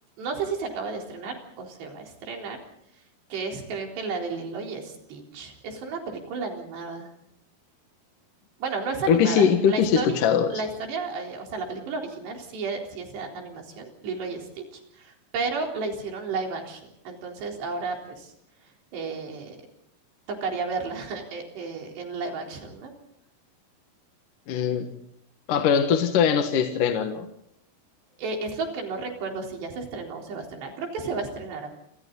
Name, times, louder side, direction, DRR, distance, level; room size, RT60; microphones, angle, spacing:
voice 1, 0.2-2.6 3.3-7.1 8.6-18.3 18.9-19.6 20.3-22.9 28.2-31.7, right 4 dB, 80° right, 2 dB, 6.1 m, -33 dB
voice 2, 9.1-10.5 24.5-24.9 25.5-27.3, left 7 dB, 60° left, 5 dB, 2.8 m, -21 dB
29.0 x 26.5 x 4.0 m, 0.72 s
omnidirectional pair, 4.8 m